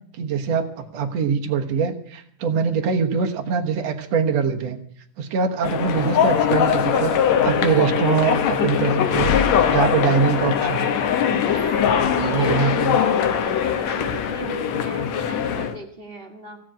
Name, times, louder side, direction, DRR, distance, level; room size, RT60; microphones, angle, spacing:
voice 1, 0.2-4.8 5.2-9.3 9.7-11.0 12.2-13.0, right 6 dB, 60° right, 5 dB, 2.2 m, -23 dB
sound 1, 5.6-15.8, left 8 dB, 65° left, 2.2 m, -21 dB
voice 2, 11.3-16.6, right 3 dB, 25° right, 3 dB, 1.5 m, -37 dB
16.5 x 7.6 x 8.9 m, 0.64 s
omnidirectional pair, 3.7 m